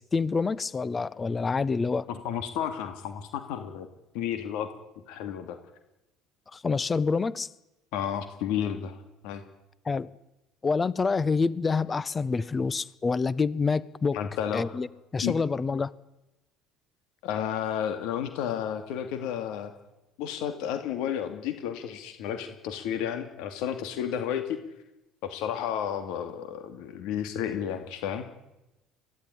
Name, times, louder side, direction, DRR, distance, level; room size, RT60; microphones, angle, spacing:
voice 1, 0.0-2.1 6.5-7.5 9.8-10.1 10.6-14.2 14.5-14.9 15.1-15.9, left 4 dB, 20° left, 20 dB, 0.8 m, -27 dB
voice 2, 2.1-3.9 4.1-4.7 5.1-5.6 7.9-9.0 9.2-9.4 14.1-14.7 15.2-15.3 17.2-19.7 20.2-24.6 25.2-28.3, left 9 dB, 75° left, 8 dB, 2.5 m, -32 dB
22.5 x 15.5 x 10.0 m, 0.95 s
cardioid pair, 125°, 0 cm